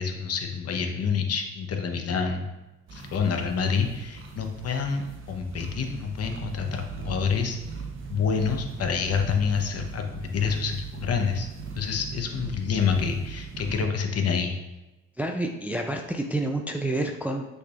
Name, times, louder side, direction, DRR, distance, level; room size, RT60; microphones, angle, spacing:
voice 1, 0.0-2.5 2.9-7.6 8.1-11.5 11.8-14.5, left 6 dB, 55° left, 5 dB, 0.7 m, -27 dB
sound 1, 2.9-13.8, right 4 dB, 45° right, 0.8 m, -39 dB
voice 2, 15.2-17.5, right 1 dB, 5° right, 3 dB, 0.3 m, -28 dB
6.3 x 3.4 x 2.4 m, 1.0 s
cardioid pair, 90°, 30 cm